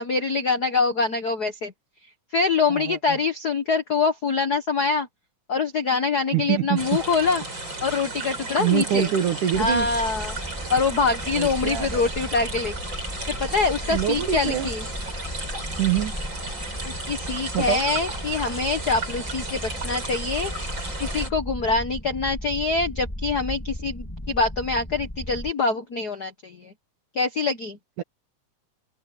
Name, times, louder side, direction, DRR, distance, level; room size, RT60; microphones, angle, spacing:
voice 1, 0.0-1.7 2.3-5.1 5.5-7.4 7.8-9.1 9.6-10.4 10.7-12.7 13.4-14.8 16.8-26.7 27.1-27.8, left 4 dB, 65° left, 0.9 m, -24 dB
voice 2, 2.7-3.2 6.3-7.0 8.6-9.9 11.3-12.0 13.9-14.7 15.8-16.2 17.5-17.8 28.0-28.1, right 11 dB, 75° right, 3.0 m, -25 dB
sound 1, 6.8-21.3, right 2 dB, 35° right, 8.8 m, -34 dB
sound 2, 9.5-25.5, left 1 dB, 10° left, 1.8 m, -35 dB
omnidirectional pair, 3.6 m